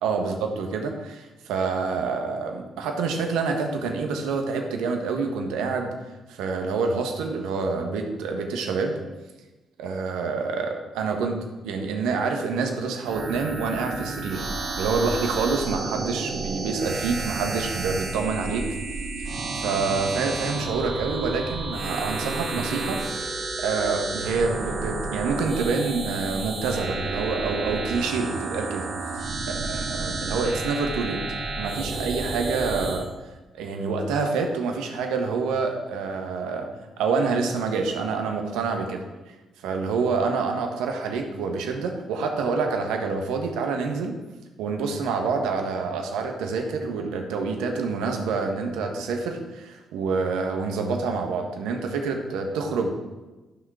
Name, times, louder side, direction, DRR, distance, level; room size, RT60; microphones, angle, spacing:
voice 1, 0.0-5.9 6.3-8.9 9.8-11.4 11.6-14.4 14.8-18.7 19.2-19.3 19.6-28.8 29.1-31.2 31.6-33.1 33.6-36.7 37.0-39.0 39.6-44.2 44.6-52.9, right 4 dB, 75° right, 4 dB, 1.3 m, -27 dB
sound 1, 13.0-33.0, right 3 dB, 55° right, 2.1 m, -31 dB
13.0 x 6.1 x 4.8 m, 1.1 s
hypercardioid pair, 40°, 0 cm